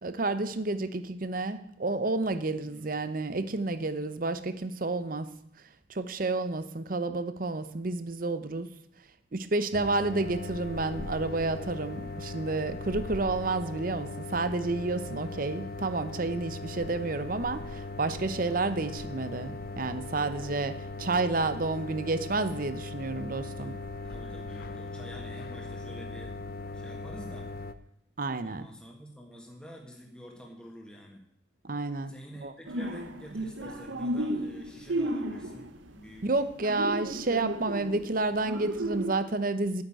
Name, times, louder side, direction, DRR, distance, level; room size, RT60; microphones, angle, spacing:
voice 1, 0.0-5.3 5.9-8.7 9.3-23.7 28.2-28.7 31.6-32.1 32.4-32.5 36.2-39.8, right 3 dB, 45° right, 12 dB, 0.7 m, -30 dB
sound 1, 9.7-27.7, left 3 dB, 50° left, 0.6 m, -39 dB
voice 2, 24.0-26.3 26.7-27.5 28.4-31.2 32.1-36.2, equal, 5° left, -1 dB, 1.7 m, -48 dB
sound 2, 32.7-36.1 36.4-39.1, right 1 dB, 75° right, 1.0 m, -34 dB
9.6 x 6.6 x 8.9 m, 0.75 s
head